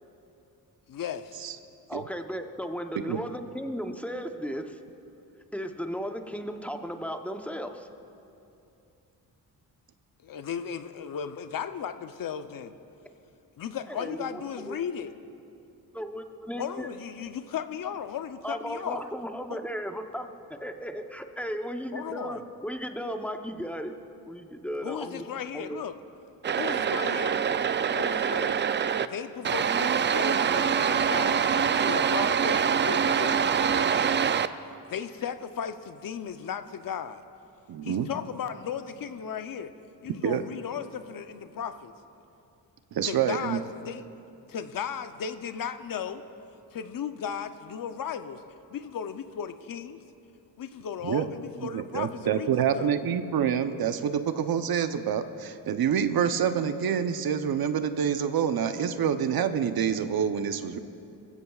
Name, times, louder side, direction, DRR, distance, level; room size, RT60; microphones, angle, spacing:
voice 1, 0.9-1.4 10.2-12.7 13.6-15.1 16.6-19.0 19.5-19.6 21.9-22.4 24.8-25.9 26.5-27.4 27.9-28.5 29.0-34.1 34.9-37.2 37.8-39.7 40.0-41.9 43.1-44.0 44.5-46.2 46.7-48.4 48.7-50.0 50.6-52.9, left 8 dB, 55° left, 10 dB, 0.7 m, -36 dB
voice 2, 1.9-4.8 5.5-7.9 13.9-14.8 15.9-16.9 18.4-23.9 24.2-25.8, equal, 5° left, 5 dB, 0.8 m, -35 dB
sound 1, 26.4-29.1 29.4-34.5, right 7 dB, 30° right, 0.4 m, -25 dB
voice 3, 37.7-38.1 40.2-40.4 42.9-43.6 51.0-51.3 51.7-60.8, right 8 dB, 60° right, 10 dB, 0.8 m, -27 dB
21.0 x 15.5 x 2.4 m, 2.7 s
cardioid pair, 80°, 40 cm